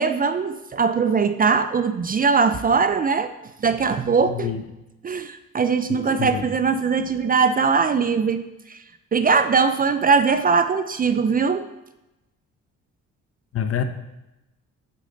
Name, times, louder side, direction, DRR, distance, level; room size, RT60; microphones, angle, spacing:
voice 1, 0.0-3.3 3.6-4.5 5.0-8.8 9.1-11.7, right 5 dB, 30° right, 11 dB, 0.4 m, -21 dB
voice 2, 4.3-4.6 5.9-6.5 13.5-13.8, left 9 dB, 50° left, 9 dB, 0.7 m, -27 dB
8.4 x 5.0 x 3.9 m, 0.95 s
cardioid pair, 90°, 30 cm